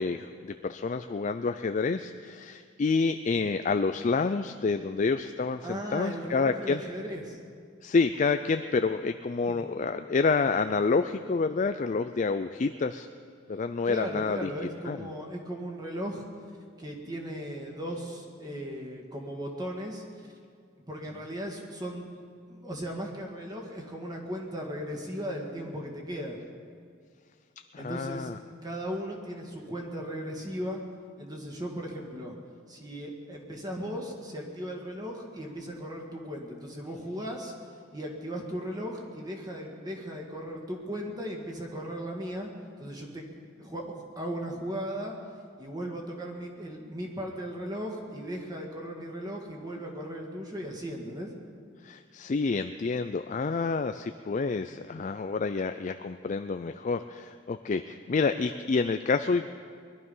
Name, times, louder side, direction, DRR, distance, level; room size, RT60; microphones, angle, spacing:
voice 1, 0.0-6.8 7.8-13.1 13.5-14.5 14.9-15.0 27.7-28.4 51.8-59.5, left 4 dB, 35° left, 9 dB, 0.4 m, -28 dB
voice 2, 5.6-7.4 9.5-9.7 13.9-16.3 16.8-20.0 20.9-22.1 22.5-26.4 27.8-28.3 28.6-30.8 31.2-32.3 32.7-37.5 37.9-42.5 42.8-43.3 43.6-45.2 45.6-51.3, equal, 20° right, 0 dB, 1.8 m, -37 dB
21.0 x 12.0 x 5.5 m, 2.1 s
head